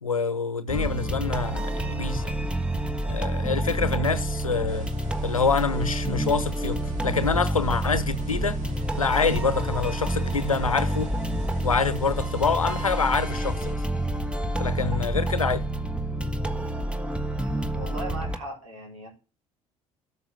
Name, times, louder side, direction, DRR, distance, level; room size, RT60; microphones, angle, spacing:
voice 1, 0.0-2.4 3.0-4.9 5.2-8.6 9.0-11.1 11.6-13.8 14.6-15.7, left 5 dB, 90° left, 0.8 m, -26 dB
sound 1, 0.7-18.4, right 1 dB, 5° right, 1.5 m, -28 dB
sound 2, 4.7-13.7, right 2 dB, 45° right, 3.8 m, -42 dB
voice 2, 17.7-19.1, right 1 dB, 80° right, 4.6 m, -37 dB
13.0 x 6.4 x 8.9 m
figure-of-eight pair, 55°, 17 cm